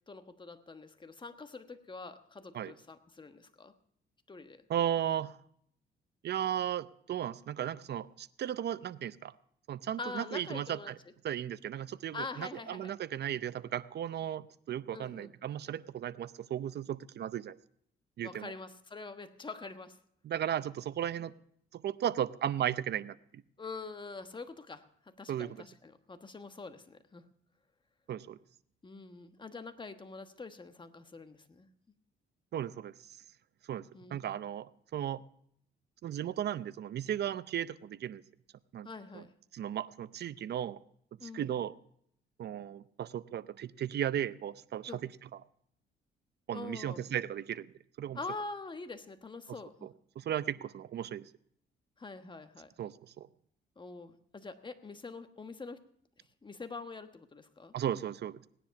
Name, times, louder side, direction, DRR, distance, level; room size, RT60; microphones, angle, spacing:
voice 1, 0.1-3.7 4.3-4.7 10.0-10.9 12.1-12.9 14.9-15.3 18.2-20.0 23.6-27.2 28.8-31.7 33.9-34.3 38.8-39.3 41.2-41.5 44.9-45.0 46.5-47.0 48.1-49.9 52.0-52.7 53.8-55.8 56.4-57.7, left 3 dB, 25° left, 8 dB, 1.2 m, -45 dB
voice 2, 4.7-5.4 6.2-9.3 9.7-11.0 11.2-17.6 18.2-18.5 20.2-21.3 21.7-23.4 25.3-25.6 28.1-28.4 32.5-33.2 33.7-35.2 36.0-38.2 38.7-38.9 39.1-39.2 39.5-40.8 41.2-41.7 42.4-45.1 46.5-48.2 49.8-49.9 50.2-51.3 52.8-53.3 57.7-58.5, right 10 dB, 55° right, 15 dB, 0.6 m, -35 dB
17.5 x 10.0 x 5.8 m, 0.69 s
cardioid pair, 90°, 20 cm